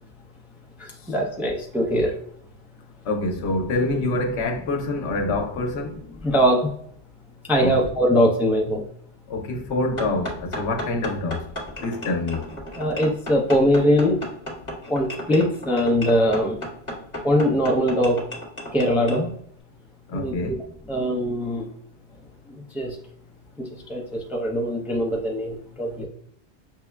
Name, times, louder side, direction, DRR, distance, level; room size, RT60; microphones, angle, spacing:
voice 1, 1.1-2.1 6.2-6.7 7.5-8.8 12.8-14.1 14.9-16.6 17.2-18.2 18.7-19.3 20.1-20.3 20.9-21.6 22.7-22.9 23.9-24.0 24.3-26.1, equal, ahead, 0.4 m, -21 dB
voice 2, 3.0-6.0 7.6-7.8 9.3-11.5 11.8-12.5 20.1-20.6, left 2 dB, 85° left, 1.0 m, -26 dB
sound 1, 10.0-19.2, equal, 30° left, 1.2 m, -34 dB
6.0 x 2.1 x 2.2 m
omnidirectional pair, 1.1 m